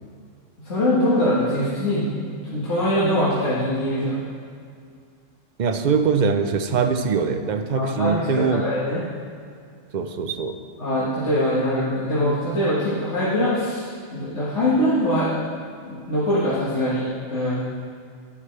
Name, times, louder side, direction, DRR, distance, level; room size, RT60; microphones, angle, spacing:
voice 1, 0.6-4.2 7.7-9.0 10.8-15.3 15.9-17.6, equal, 65° left, -10 dB, 1.9 m, -23 dB
voice 2, 5.6-8.6 9.9-10.6, right 5 dB, 50° right, 7 dB, 0.5 m, -22 dB
11.0 x 10.0 x 3.2 m, 2.2 s
omnidirectional pair, 1.3 m